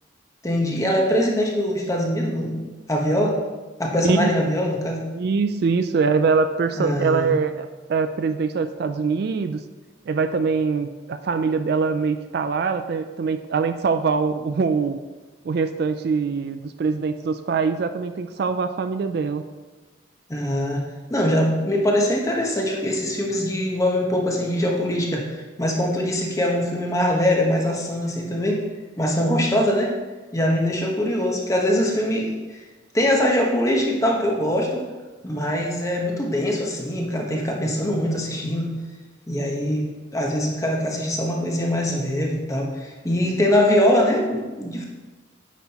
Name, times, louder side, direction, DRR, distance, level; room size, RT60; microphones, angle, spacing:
voice 1, 0.4-3.4 3.8-5.0 6.8-7.3 20.3-20.8 21.1-28.6 29.0-29.9 30.3-32.6 32.9-34.8 35.2-38.7 39.3-44.8, left 1 dB, 15° left, -1 dB, 1.0 m, -22 dB
voice 2, 5.1-9.6 10.1-15.0 15.4-19.4, right 5 dB, 55° right, 10 dB, 0.3 m, -23 dB
9.2 x 6.0 x 2.9 m, 1.2 s
head